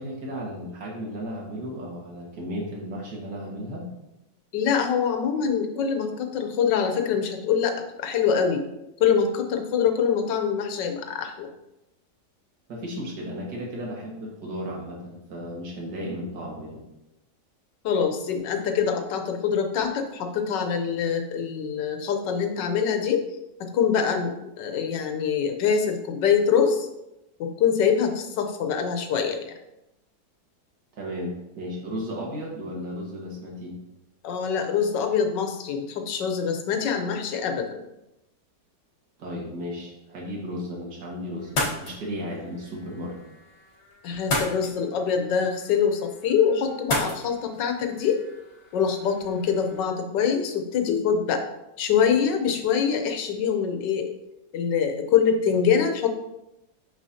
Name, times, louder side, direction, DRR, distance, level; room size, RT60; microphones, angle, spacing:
voice 1, 0.0-3.8 12.7-16.8 30.9-33.7 39.2-43.2, equal, 65° right, -3 dB, 2.1 m, -34 dB
voice 2, 4.5-8.7 9.0-11.5 17.8-23.2 23.6-26.9 27.4-29.5 34.2-37.8 44.0-48.2 48.7-51.5 51.8-54.1 54.5-56.1, left 7 dB, 80° left, 5 dB, 1.4 m, -24 dB
sound 1, 41.4-49.8, left 1 dB, 40° left, 1.3 m, -34 dB
6.3 x 6.1 x 2.7 m, 0.89 s
omnidirectional pair, 1.9 m